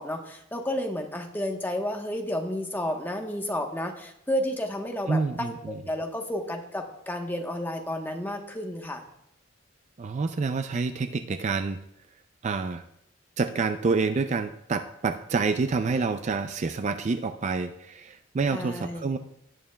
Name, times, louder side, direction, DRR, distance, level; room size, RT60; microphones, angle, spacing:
voice 1, 0.0-9.0 18.5-19.2, left 1 dB, 10° left, 2 dB, 1.0 m, -31 dB
voice 2, 5.1-5.8 10.0-11.8 12.4-12.8 13.4-19.2, right 4 dB, 35° right, 9 dB, 0.4 m, -28 dB
17.5 x 9.0 x 2.2 m, 0.77 s
head